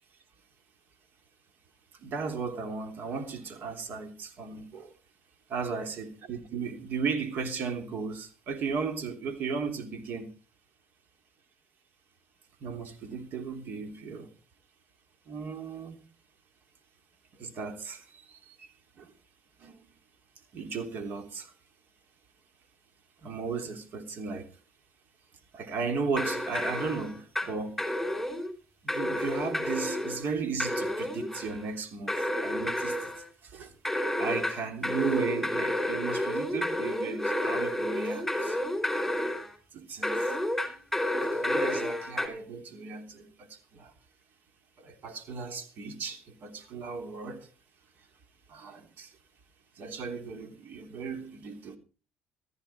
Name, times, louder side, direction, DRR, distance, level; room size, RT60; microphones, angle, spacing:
voice 1, 2.0-4.9 5.5-10.3 12.6-14.3 15.3-15.9 17.4-18.7 19.0-19.1 19.6-19.7 20.5-21.5 23.2-24.4 25.5-27.8 28.8-32.1 32.4-33.0 33.5-33.7 34.2-38.6 39.7-40.2 41.2-43.3 43.7-43.9 44.8-47.5 48.5-49.1 49.8-51.8, right 5 dB, 60° right, 3.4 m, -35 dB
sound 1, 26.1-27.5 27.8-28.5 28.9-30.2 30.6-31.6 32.1-33.2 33.8-39.5 40.0-42.3, left 1 dB, 5° left, 4.2 m, -30 dB
15.0 x 13.5 x 4.4 m
cardioid pair, 90°, 4 cm